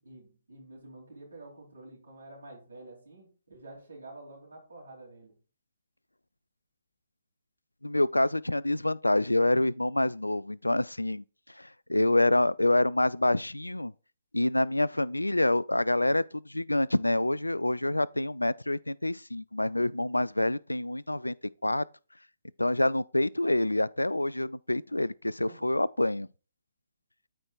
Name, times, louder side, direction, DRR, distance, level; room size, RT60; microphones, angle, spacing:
voice 1, 0.0-5.4 25.4-25.7, right 2 dB, 70° right, 3.3 m, -49 dB
voice 2, 7.8-11.2 11.6-13.9 14.3-21.4 21.6-21.8 22.6-26.3, left 1 dB, 80° left, 0.3 m, -27 dB
13.0 x 4.5 x 2.5 m
figure-of-eight pair, 130°, 0 cm